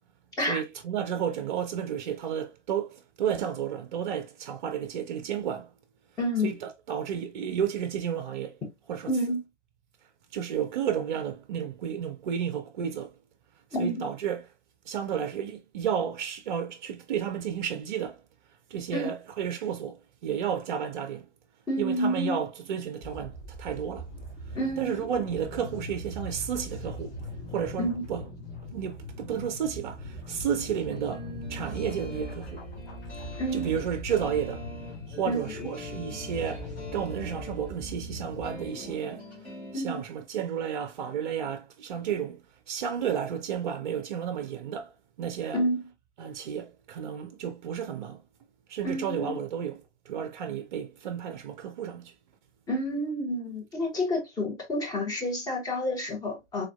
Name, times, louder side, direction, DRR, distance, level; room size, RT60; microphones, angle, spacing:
voice 1, 0.5-5.7 6.4-8.6 8.9-9.2 10.3-13.2 13.8-14.5 14.8-18.2 18.5-21.3 21.8-24.1 24.4-27.2 27.5-28.2 28.7-32.6 33.5-34.7 35.1-39.4 39.7-45.6 46.2-48.2 48.7-52.1, right 8 dB, 45° right, 0.4 m, -32 dB
voice 2, 6.2-6.5 9.1-9.4 13.7-14.1 18.9-19.0 21.7-22.4 24.5-24.9 27.8-28.0 33.4-33.7 35.3-35.5 39.7-39.9 45.5-45.8 48.8-49.4 52.7-56.7, equal, 10° left, 0.7 m, -29 dB
sound 1, 23.0-39.0, left 1 dB, 30° left, 1.3 m, -41 dB
sound 2, 30.9-39.7, left 2 dB, 80° left, 2.0 m, -44 dB
3.4 x 2.4 x 2.3 m
figure-of-eight pair, 110°, 35 cm